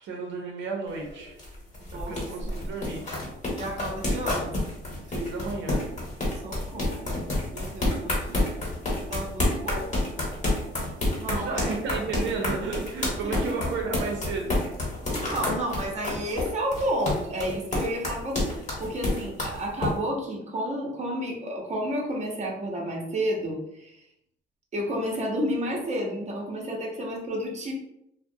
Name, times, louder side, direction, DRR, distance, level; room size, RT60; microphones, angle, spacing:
voice 1, 0.0-1.4 2.1-3.1 5.1-5.9 11.3-14.7, right 4 dB, 70° right, 0 dB, 0.6 m, -32 dB
sound 1, 0.9-19.9, left 1 dB, 35° left, 1.1 m, -29 dB
voice 2, 3.5-4.5 6.4-8.4 9.0-10.1 11.2-11.7 13.2-13.8 15.1-24.0 24.7-27.7, equal, 35° right, -1 dB, 0.7 m, -31 dB
2.3 x 2.1 x 2.6 m, 0.79 s
cardioid pair, 90°, 20 cm